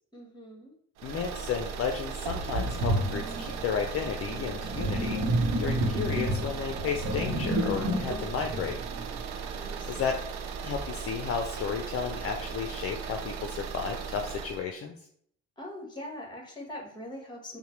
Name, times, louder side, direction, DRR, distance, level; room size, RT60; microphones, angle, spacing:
voice 1, 0.1-0.7 9.5-10.2 15.6-17.6, left 1 dB, 15° left, 1 dB, 1.4 m, -42 dB
voice 2, 1.0-8.8 9.9-10.2 10.6-14.9, left 6 dB, 50° left, 4 dB, 0.5 m, -33 dB
sound 1, 1.0-14.6, right 6 dB, 65° right, 0.6 m, -37 dB
Sink (filling or washing), 1.6-1.7 2.3-9.6, right 1 dB, 85° right, 0.9 m, -31 dB
5.5 x 2.2 x 3.2 m, 0.66 s
supercardioid pair, 80°, 30 cm